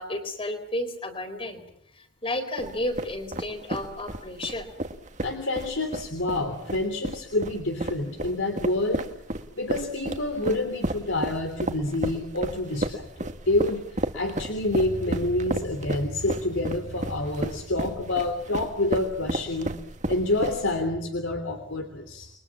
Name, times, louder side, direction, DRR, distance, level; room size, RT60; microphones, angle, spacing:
voice 1, 0.0-1.6 2.0-4.7, left 1 dB, 30° left, 8 dB, 4.0 m, -32 dB
sound 1, 2.6-20.9, right 1 dB, 40° right, 1.7 m, -32 dB
voice 2, 5.2-9.1 9.6-19.7 20.1-22.3, left 2 dB, 80° left, 6 dB, 3.2 m, -28 dB
29.5 x 22.5 x 7.3 m, 0.70 s
head